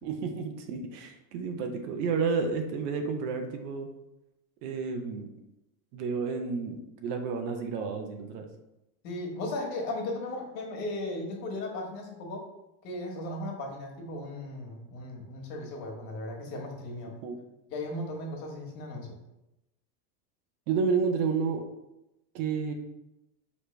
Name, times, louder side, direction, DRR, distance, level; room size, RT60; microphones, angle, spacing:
voice 1, 0.0-3.9 4.6-5.3 5.9-8.4 17.2-17.4 20.7-21.6 22.3-22.7, right 5 dB, 70° right, 5 dB, 0.9 m, -30 dB
voice 2, 9.0-12.4 12.8-17.1 17.7-19.2, left 2 dB, 75° left, 0 dB, 1.5 m, -36 dB
5.1 x 3.2 x 3.3 m, 0.90 s
supercardioid pair, 140°, 50 cm